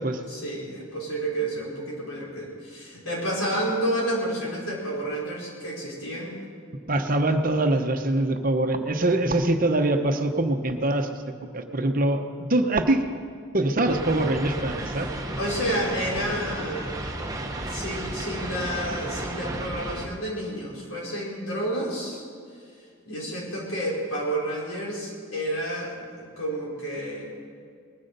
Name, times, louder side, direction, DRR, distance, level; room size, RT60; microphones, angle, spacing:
voice 1, 0.3-6.3 15.0-17.0 17.6-22.2 23.0-27.2, right 1 dB, 90° left, -4 dB, 5.1 m, -30 dB
voice 2, 6.9-11.1 11.5-13.1 13.5-15.1, right 2 dB, 40° right, 6 dB, 1.0 m, -23 dB
sound 1, 13.9-20.1, right 1 dB, 15° right, 1.1 m, -33 dB
20.0 x 9.8 x 6.7 m, 2.1 s
head